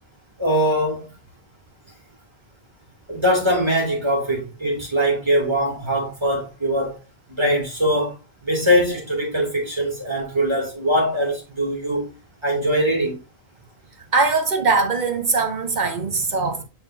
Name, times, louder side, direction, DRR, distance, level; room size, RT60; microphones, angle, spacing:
voice 1, 0.4-1.2 3.1-7.0 7.4-8.1 8.4-12.1 12.4-13.2, equal, 25° right, 3.1 m, -22 dB
voice 2, 14.1-16.6, right 4 dB, 45° right, 1.2 m, -21 dB
6.5 x 5.6 x 2.8 m
omnidirectional pair, 1.1 m